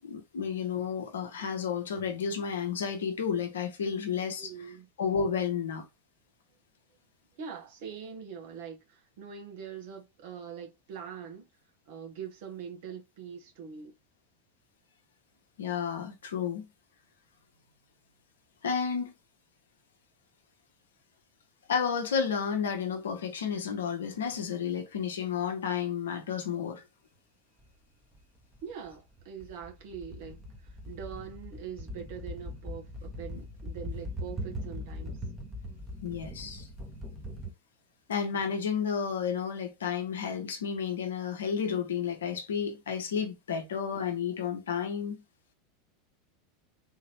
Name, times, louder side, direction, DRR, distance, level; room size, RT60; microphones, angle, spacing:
voice 1, 0.0-4.5 5.0-5.8 15.6-16.7 18.6-19.1 21.7-26.8 36.0-36.7 38.1-45.2, left 7 dB, 70° left, 0.9 m, -31 dB
voice 2, 4.4-4.9 7.4-11.5 11.9-13.9 28.6-35.2, right 7 dB, 55° right, 1.4 m, -43 dB
sound 1, 27.6-27.7 28.1-37.5, left 1 dB, 15° right, 1.2 m, -41 dB
3.6 x 2.9 x 3.0 m
figure-of-eight pair, 80°, 0 cm